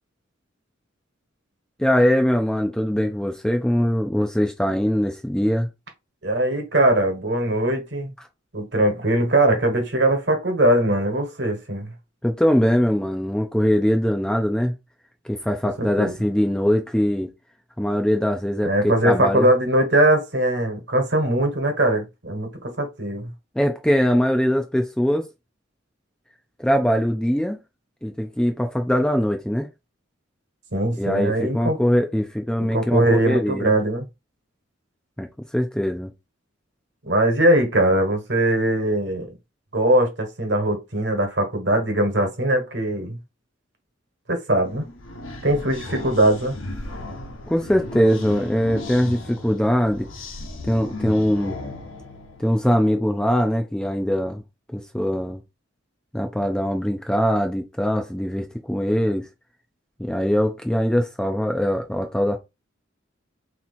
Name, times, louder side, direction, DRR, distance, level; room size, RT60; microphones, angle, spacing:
voice 1, 1.8-5.7 12.2-14.8 15.2-17.3 17.8-19.5 23.6-25.3 26.6-27.6 28.0-29.7 31.0-33.7 35.2-35.3 35.5-36.1 47.5-50.1 50.7-51.6 52.4-54.4 54.7-55.4 56.1-59.3 60.0-62.4, equal, 5° left, 0.4 m, -22 dB
voice 2, 6.2-8.1 8.5-11.9 15.8-16.1 18.6-23.3 30.7-31.8 32.7-34.0 37.0-39.3 39.7-43.2 44.3-44.8 45.4-46.5, right 1 dB, 60° right, 1.4 m, -21 dB
sound 1, 44.6-52.7, left 2 dB, 80° left, 1.0 m, -35 dB
3.6 x 3.0 x 4.1 m
head